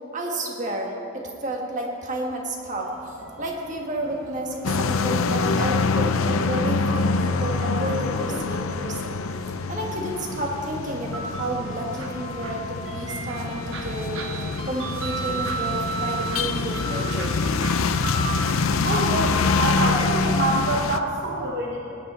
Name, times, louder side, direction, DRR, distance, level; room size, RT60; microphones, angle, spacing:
voice 1, 0.1-9.1 9.7-17.4, right 1 dB, 35° right, 0 dB, 1.6 m, -31 dB
sound 1, 2.8-20.3, right 2 dB, 85° right, 1.4 m, -35 dB
sound 2, 4.5-8.4, equal, 10° left, 1.5 m, -41 dB
sound 3, 4.6-21.0, left 4 dB, 85° left, 0.5 m, -25 dB
voice 2, 18.8-21.8, right 2 dB, 55° right, -2 dB, 1.1 m, -26 dB
18.5 x 9.5 x 4.3 m, 2.9 s
head